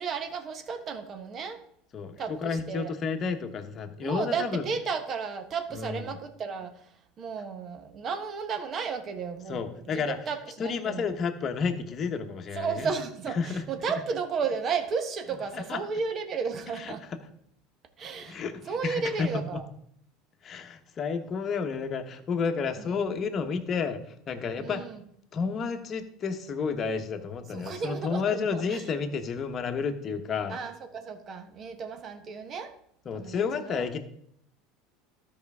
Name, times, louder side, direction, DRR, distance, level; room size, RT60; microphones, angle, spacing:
voice 1, 0.0-1.6 2.2-2.9 4.0-6.7 7.2-11.1 12.5-17.0 18.0-19.6 22.8-23.1 24.6-25.0 27.5-28.8 30.5-32.7 33.1-33.8, right 5 dB, 40° right, 8 dB, 1.2 m, -33 dB
voice 2, 1.9-4.6 5.7-6.1 9.5-10.2 10.6-12.9 13.4-13.6 15.5-15.8 16.8-16.9 18.2-19.6 20.4-24.0 24.3-24.8 25.3-30.6 33.0-34.0, left 5 dB, 40° left, 6 dB, 1.1 m, -31 dB
13.0 x 5.3 x 3.6 m, 0.68 s
hypercardioid pair, 95°, 0 cm